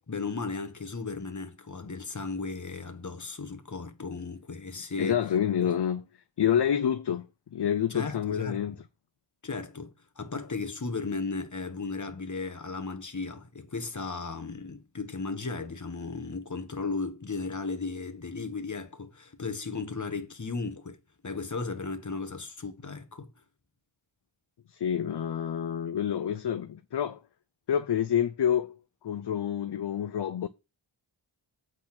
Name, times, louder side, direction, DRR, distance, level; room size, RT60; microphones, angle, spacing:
voice 1, 0.0-5.2 5.6-5.8 7.9-8.8 9.4-21.0 21.2-23.3, left 4 dB, 35° left, 1.4 m, -35 dB
voice 2, 5.0-6.0 6.4-7.3 7.5-8.8 24.7-27.2 27.7-28.8 29.0-30.5, left 9 dB, 55° left, 0.6 m, -28 dB
8.7 x 4.1 x 6.0 m
wide cardioid pair, 70°, 49 cm